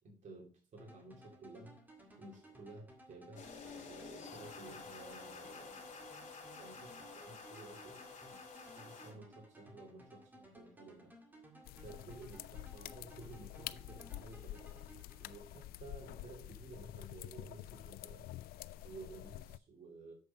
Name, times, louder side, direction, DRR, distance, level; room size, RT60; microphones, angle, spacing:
voice 1, 0.0-1.8 2.2-6.1 6.6-8.1 8.6-11.1 11.8-14.9 15.2-18.3 18.8-20.1, right 3 dB, 50° right, -1 dB, 2.7 m, -54 dB
sound 1, 0.8-15.8, right 1 dB, 10° right, 2.1 m, -59 dB
sound 2, 3.4-9.1, left 4 dB, 50° left, 2.8 m, -50 dB
sound 3, 11.6-19.6, left 14 dB, 90° left, 0.4 m, -48 dB
7.5 x 5.5 x 5.5 m, 0.37 s
cardioid pair, 100°, 15 cm